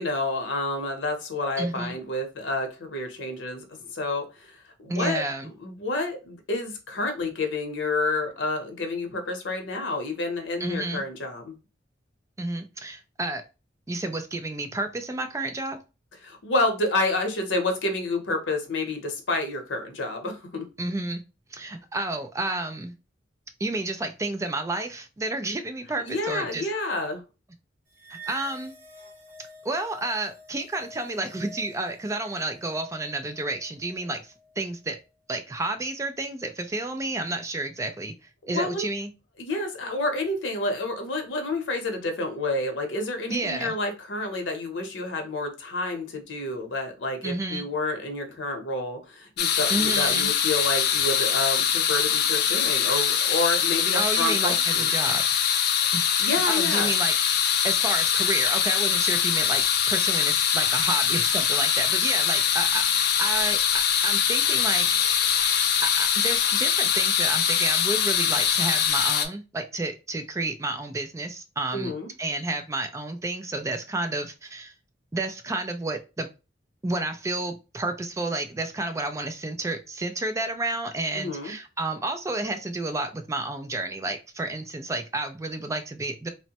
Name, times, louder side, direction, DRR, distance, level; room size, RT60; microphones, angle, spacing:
voice 1, 0.0-4.6 4.8-11.6 16.2-20.7 26.0-27.2 38.4-38.9 39.4-54.9 56.2-56.9 71.7-72.1 81.1-81.5, left 2 dB, 85° left, 5 dB, 0.7 m, -29 dB
voice 2, 1.6-1.9 4.9-5.5 10.6-11.0 12.4-13.4 13.9-15.8 20.8-21.2 21.5-22.9 23.6-26.7 28.1-28.7 29.6-35.0 35.3-38.1 38.5-39.1 43.3-43.7 47.2-47.7 49.7-50.3 53.9-55.2 55.9-64.9 65.3-65.5 65.8-71.9 72.2-74.7 75.1-76.3 76.8-86.3, right 2 dB, 15° right, 7 dB, 0.3 m, -31 dB
sound 1, 28.0-34.5, right 1 dB, 50° right, 0.9 m, -48 dB
sound 2, 49.4-69.3, left 8 dB, 60° left, 0.4 m, -23 dB
3.0 x 2.1 x 2.8 m, 0.30 s
head